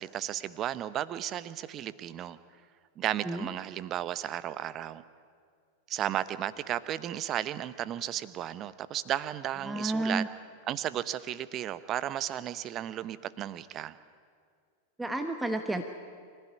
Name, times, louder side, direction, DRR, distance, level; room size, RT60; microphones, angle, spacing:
voice 1, 0.0-2.4 3.0-5.0 5.9-10.2 10.7-13.9, right 11 dB, 30° right, 16 dB, 0.9 m, -34 dB
voice 2, 9.7-10.3 15.0-15.8, right 2 dB, 5° right, 6 dB, 1.2 m, -31 dB
24.5 x 15.5 x 9.7 m, 2.1 s
figure-of-eight pair, 90°, 0 cm